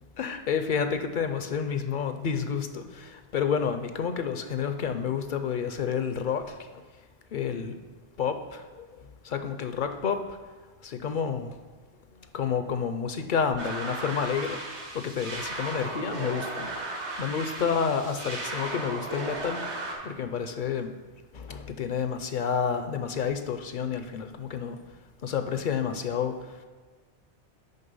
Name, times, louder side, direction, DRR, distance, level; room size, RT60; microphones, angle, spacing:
voice 1, 0.2-6.8 7.3-7.8 8.2-8.9 9.2-10.4 10.8-11.5 12.3-14.6 14.9-16.7 17.2-19.6 20.0-20.9 21.3-24.8 25.2-26.4, left 6 dB, 55° left, 8 dB, 0.6 m, -29 dB
sound 1, 13.6-19.9, right 2 dB, 70° right, 1.7 m, -35 dB
6.7 x 5.4 x 5.4 m, 1.5 s
omnidirectional pair, 1.2 m